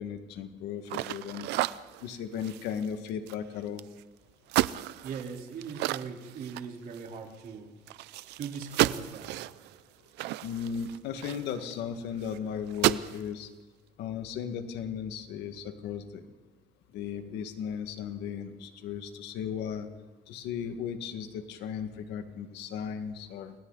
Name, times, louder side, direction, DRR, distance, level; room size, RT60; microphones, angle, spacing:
voice 1, 0.0-1.5 2.0-3.9 10.4-13.5 14.0-16.3 16.9-19.9 20.3-23.5, left 7 dB, 85° left, 7 dB, 1.9 m, -36 dB
sound 1, 0.9-4.0 4.5-7.2 7.5-7.6 7.9-11.8 12.2-12.4 12.7-13.2, right 16 dB, 85° right, 0.6 m, -32 dB
voice 2, 5.0-7.7 8.4-9.4, right 6 dB, 60° right, 1 dB, 4.0 m, -40 dB
29.5 x 22.5 x 4.1 m, 1.2 s
cardioid pair, 110°, 17 cm